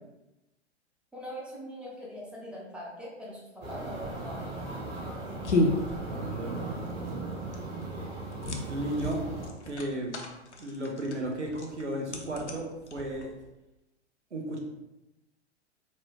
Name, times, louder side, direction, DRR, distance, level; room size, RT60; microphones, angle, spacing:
voice 1, 1.1-4.5, equal, 5° right, -5 dB, 0.5 m, -42 dB
sound 1, 3.6-9.5, right 2 dB, 40° right, 1.3 m, -38 dB
sound 2, 4.1-13.5, left 2 dB, 80° left, 0.6 m, -34 dB
voice 2, 6.0-6.8 8.6-9.2 9.6-10.2 10.6-13.3 14.3-14.6, right 1 dB, 80° right, 1 dB, 0.8 m, -34 dB
4.2 x 2.3 x 2.9 m, 0.96 s
figure-of-eight pair, 105°, 34 cm